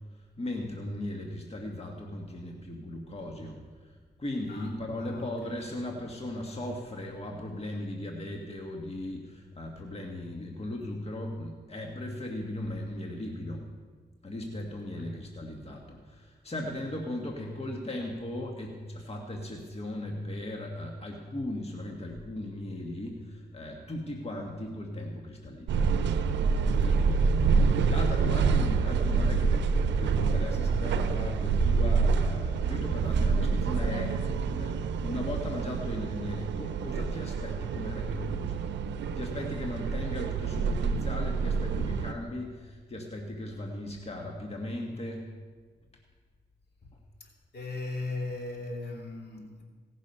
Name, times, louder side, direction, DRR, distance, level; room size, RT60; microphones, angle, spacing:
voice 1, 0.1-13.7 14.2-26.0 26.8-27.1 27.5-29.7 30.0-34.2 34.6-38.8 39.1-45.3 46.9-47.0, left 1 dB, 35° left, 1 dB, 1.7 m, -37 dB
voice 2, 4.5-5.3 14.9-15.2 26.7-27.2 27.9-28.0 47.2-49.6, left 2 dB, 65° left, -1 dB, 2.8 m, -39 dB
sound 1, 25.7-42.1, right 5 dB, 85° right, 0.6 m, -27 dB
17.0 x 6.3 x 5.5 m, 1.5 s
supercardioid pair, 45°, 18 cm